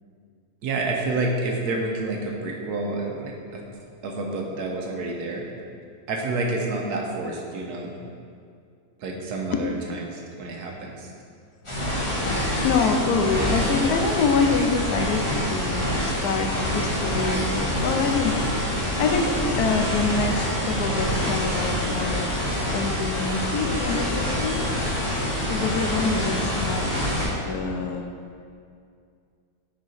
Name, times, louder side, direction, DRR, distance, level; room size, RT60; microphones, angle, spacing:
voice 1, 0.6-3.6 4.0-5.4 6.1-7.9 9.0-11.1, right 2 dB, 85° right, 0 dB, 1.4 m, -29 dB
sound 1, 11.6-27.2, left 1 dB, 20° left, 1.4 m, -26 dB
voice 2, 12.6-22.3 22.7-24.6 25.5-27.1 27.5-28.1, left 4 dB, 80° left, 4 dB, 1.1 m, -26 dB
6.3 x 4.9 x 4.2 m, 2.3 s
omnidirectional pair, 1.6 m